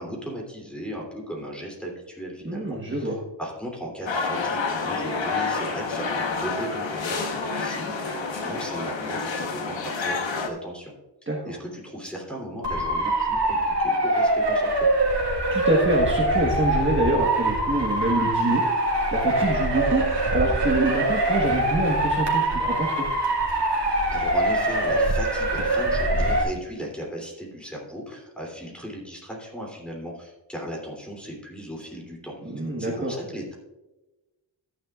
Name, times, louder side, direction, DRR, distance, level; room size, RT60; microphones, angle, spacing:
voice 1, 0.0-3.1 3.4-10.9 11.4-14.7 24.1-33.5, equal, ahead, -2 dB, 3.1 m, -37 dB
voice 2, 2.4-3.2 11.3-11.5 15.5-18.6 19.1-23.1 32.5-33.1, right 1 dB, 25° right, -2 dB, 1.4 m, -25 dB
sound 1, 4.1-10.5, left 4 dB, 90° left, 1.3 m, -28 dB
Motor vehicle (road) / Siren, 12.6-26.4, right 1 dB, 70° right, 2.3 m, -23 dB
13.5 x 9.8 x 2.4 m, 1.1 s
wide cardioid pair, 120°, 44 cm